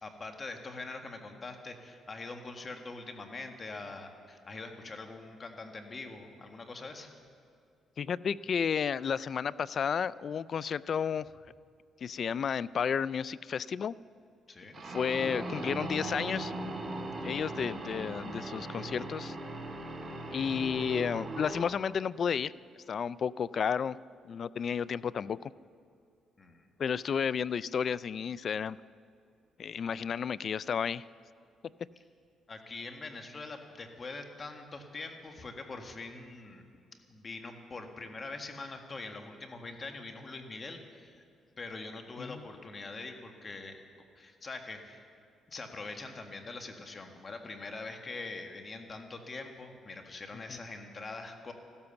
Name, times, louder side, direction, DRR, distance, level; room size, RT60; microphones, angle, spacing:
voice 1, 0.0-7.1 14.5-14.8 26.4-26.7 29.8-29.9 32.5-36.7 37.1-41.3 41.6-43.8 44.2-45.0 45.5-51.5, left 3 dB, 35° left, 4 dB, 1.8 m, -43 dB
voice 2, 8.0-11.3 12.0-13.9 14.9-16.5 17.2-19.4 20.3-22.5 22.9-24.0 24.3-25.5 26.8-28.8 29.6-31.0 42.2-42.4 50.5-50.6, left 7 dB, 55° left, 20 dB, 0.3 m, -32 dB
sound 1, 14.7-21.6, right 2 dB, 35° right, 2.9 m, -39 dB
15.0 x 13.0 x 7.0 m, 2.4 s
cardioid pair, 90°, 0 cm